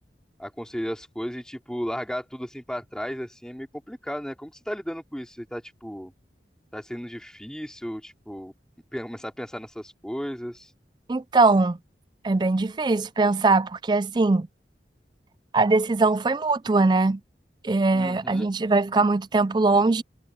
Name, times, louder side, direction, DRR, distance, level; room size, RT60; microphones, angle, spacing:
voice 1, 0.4-6.1 6.7-8.5 8.9-10.7 17.9-18.5, equal, 5° left, 2.8 m, -34 dB
voice 2, 11.1-11.8 12.2-14.5 15.5-17.2 17.6-20.0, right 3 dB, 25° right, 0.3 m, -21 dB
head